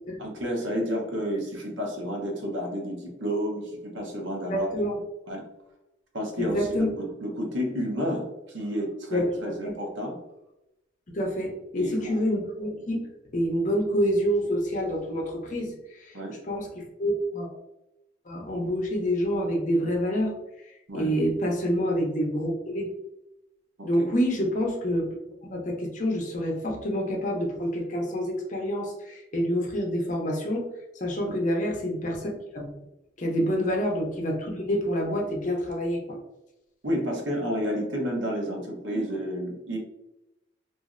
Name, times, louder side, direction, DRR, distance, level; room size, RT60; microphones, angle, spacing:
voice 1, 0.2-4.9 5.3-5.4 6.1-10.2 11.8-12.2 16.1-16.3 20.9-21.1 24.0-24.1 31.3-31.4 36.8-39.8, equal, 80° right, 0 dB, 0.8 m, -31 dB
voice 2, 4.5-5.0 6.4-6.9 9.1-9.3 9.6-9.7 11.1-13.0 13.3-16.1 16.4-17.5 18.3-20.3 20.9-22.9 23.8-25.0 25.4-30.7 31.0-32.7 33.2-36.0, equal, 40° left, 0 dB, 0.6 m, -27 dB
3.0 x 2.5 x 2.4 m, 0.92 s
head